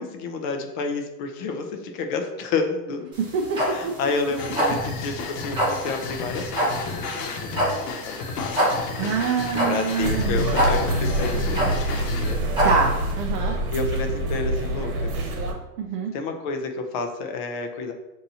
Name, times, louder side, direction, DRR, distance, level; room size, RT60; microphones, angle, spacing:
voice 1, 0.0-3.1 3.6-7.1 7.4-12.5 13.7-15.3 16.1-17.9, left 4 dB, 30° left, 5 dB, 0.4 m, -30 dB
sound 1, 3.1-13.1, equal, 10° right, 1.2 m, -26 dB
voice 2, 3.3-3.9 9.0-10.4 12.6-13.6 15.8-16.1, right 5 dB, 35° right, 0 dB, 0.5 m, -25 dB
sound 2, 4.4-12.4, left 4 dB, 70° left, 1.0 m, -33 dB
sound 3, 10.0-15.5, right 1 dB, 60° right, 1.1 m, -26 dB
6.7 x 2.7 x 2.7 m, 0.96 s
supercardioid pair, 145°, 49 cm